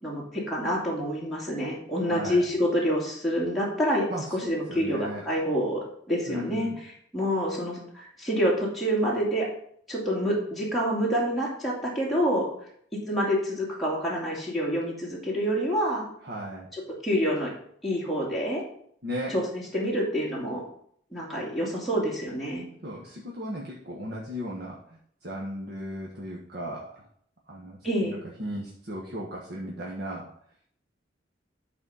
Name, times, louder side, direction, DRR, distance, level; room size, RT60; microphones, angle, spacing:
voice 1, 0.0-6.7 7.1-9.5 9.9-12.5 13.1-16.1 17.0-17.5 17.8-18.6 19.3-20.6 21.1-22.7 27.8-28.2, equal, ahead, -5 dB, 2.5 m, -27 dB
voice 2, 2.0-2.4 4.1-5.3 6.3-6.8 16.2-16.7 19.0-19.3 22.8-27.1 27.5-30.3, equal, 60° right, -3 dB, 1.4 m, -36 dB
11.0 x 4.3 x 5.6 m, 0.65 s
head